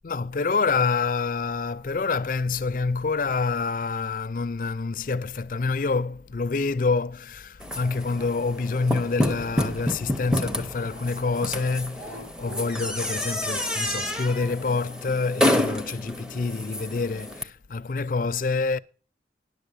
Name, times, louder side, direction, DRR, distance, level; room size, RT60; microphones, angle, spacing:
voice 1, 0.0-18.8, left 4 dB, 45° left, 0.5 m, -27 dB
sound 1, 7.6-17.4, left 1 dB, 5° right, 0.6 m, -29 dB
sound 2, 7.7-11.3 11.9-16.4, right 1 dB, 75° right, 5.9 m, -47 dB
10.5 x 7.1 x 6.6 m
head